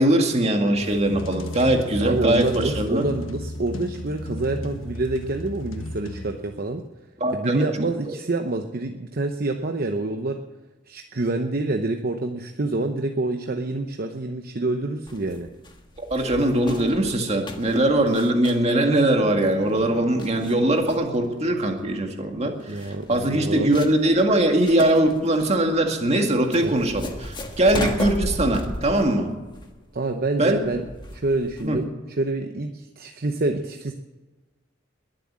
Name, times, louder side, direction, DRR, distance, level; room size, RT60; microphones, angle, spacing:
voice 1, 0.0-3.0 7.2-7.6 16.0-29.3 30.4-30.6 31.6-31.8, right 1 dB, 35° right, 3 dB, 2.1 m, -21 dB
sound 1, 0.8-6.7, left 1 dB, 90° left, 1.3 m, -34 dB
voice 2, 2.0-6.8 7.3-10.4 10.9-15.5 22.7-23.7 26.6-26.7 29.9-30.8 31.1-33.9, right 2 dB, 50° right, 5 dB, 0.8 m, -27 dB
sound 2, 15.1-31.8, left 1 dB, 25° left, 1.5 m, -36 dB
Bowed string instrument, 19.0-21.9, left 1 dB, 15° right, 4.9 m, -43 dB
21.5 x 7.7 x 7.6 m, 1.2 s
head